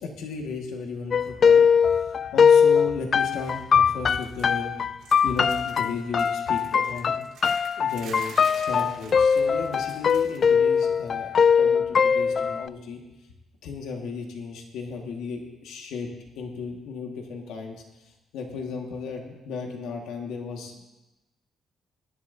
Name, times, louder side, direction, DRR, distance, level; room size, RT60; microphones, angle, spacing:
voice 1, 0.0-4.9 5.2-7.1 7.8-13.0 13.6-16.1 16.3-17.8 18.3-21.0, left 4 dB, 90° left, 1 dB, 1.8 m, -35 dB
sound 1, 1.1-12.7, left 6 dB, 50° left, 0.3 m, -21 dB
sound 2, 3.2-3.6 3.9-4.7 5.0-10.6 10.8-11.1 12.2-12.3, right 5 dB, 90° right, 4.0 m, -48 dB
20.5 x 11.5 x 2.7 m, 0.99 s
cardioid pair, 90°, 0 cm